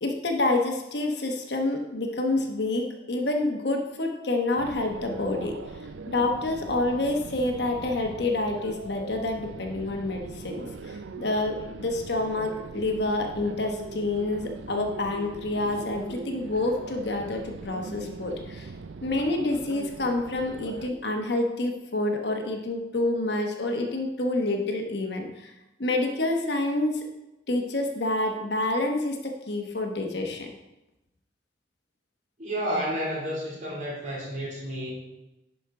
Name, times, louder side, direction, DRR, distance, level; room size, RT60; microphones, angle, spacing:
voice 1, 0.0-5.6 6.1-18.7 19.0-25.5 25.8-27.0 27.5-29.2 29.5-30.5, left 2 dB, 60° left, 3 dB, 1.1 m, -28 dB
sound 1, 4.6-20.9, right 4 dB, 85° right, 0.5 m, -41 dB
voice 2, 32.4-34.9, equal, 40° right, -4 dB, 2.8 m, -31 dB
10.5 x 5.3 x 3.7 m, 0.96 s
head